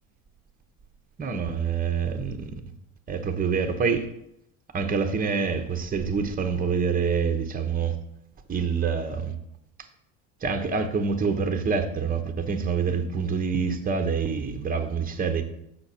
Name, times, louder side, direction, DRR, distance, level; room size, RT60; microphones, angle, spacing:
voice 1, 1.2-2.5 3.1-4.1 4.7-8.0 8.5-9.3 10.4-15.4, right 5 dB, 20° right, 0.9 m, -26 dB
6.9 x 5.8 x 4.2 m
supercardioid pair, 90°, 39 cm